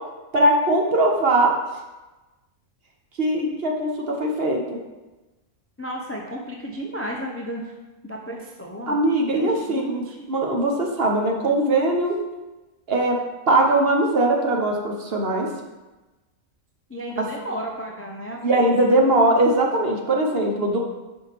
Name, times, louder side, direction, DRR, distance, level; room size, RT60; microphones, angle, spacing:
voice 1, 0.3-1.5 3.2-4.8 8.9-10.0 10.3-12.2 12.9-13.2 13.5-15.5 18.4-20.8, right 1 dB, 50° right, 1 dB, 1.1 m, -20 dB
voice 2, 5.8-7.7 8.0-9.0 9.2-10.2 16.9-18.7, equal, 15° left, 0 dB, 0.5 m, -33 dB
5.4 x 5.0 x 5.8 m, 1.1 s
omnidirectional pair, 1.4 m